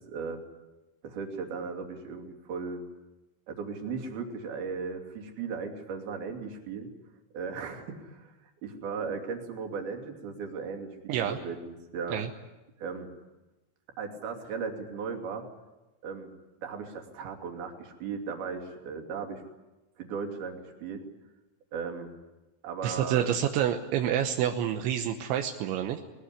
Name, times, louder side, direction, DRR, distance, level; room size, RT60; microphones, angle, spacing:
voice 1, 0.1-0.4 1.0-2.8 3.5-6.9 7.3-12.2 12.8-13.1 14.0-15.5 16.0-16.3 16.6-19.4 20.0-21.0 21.7-22.1 22.6-23.3, right 5 dB, 60° right, 3 dB, 4.4 m, -37 dB
voice 2, 11.1-11.4 12.1-12.3 22.8-26.0, right 10 dB, 80° right, 5 dB, 3.4 m, -28 dB
21.0 x 21.0 x 9.8 m, 1.1 s
omnidirectional pair, 5.3 m